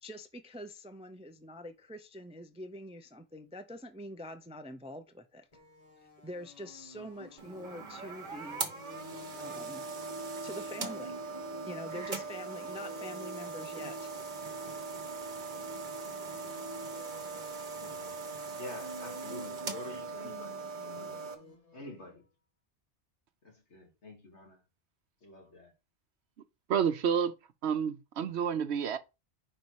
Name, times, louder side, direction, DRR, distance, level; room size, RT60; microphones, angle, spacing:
voice 1, 0.0-5.5 6.2-8.9 9.4-9.9 10.4-11.2 11.7-14.1, left 1 dB, 10° right, 0.4 m, -45 dB
sound 1, 5.5-22.1, equal, 35° left, 1.3 m, -53 dB
sound 2, 7.4-21.3, right 4 dB, 45° right, 1.2 m, -40 dB
sound 3, 8.8-17.2, equal, 30° right, 1.9 m, -49 dB
voice 2, 17.7-18.2 18.6-21.2 21.7-22.2 23.4-24.6 25.2-25.7, left 2 dB, 80° left, 2.5 m, -48 dB
voice 3, 26.7-27.3 27.6-29.0, right 7 dB, 75° right, 0.9 m, -29 dB
5.4 x 4.3 x 4.6 m
omnidirectional pair, 1.2 m